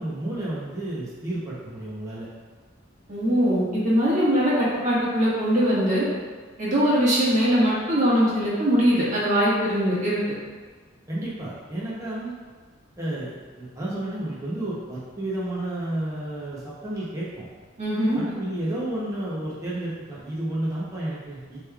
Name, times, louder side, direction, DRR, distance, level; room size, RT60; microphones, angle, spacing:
voice 1, 0.0-2.3 4.3-4.4 11.1-12.3 13.0-13.3 13.6-17.5 18.1-21.6, right 1 dB, 15° right, -8 dB, 0.8 m, -31 dB
voice 2, 3.1-6.0 6.6-10.2 17.8-18.2, equal, 40° right, -8 dB, 1.5 m, -21 dB
6.7 x 3.2 x 2.3 m, 1.4 s
head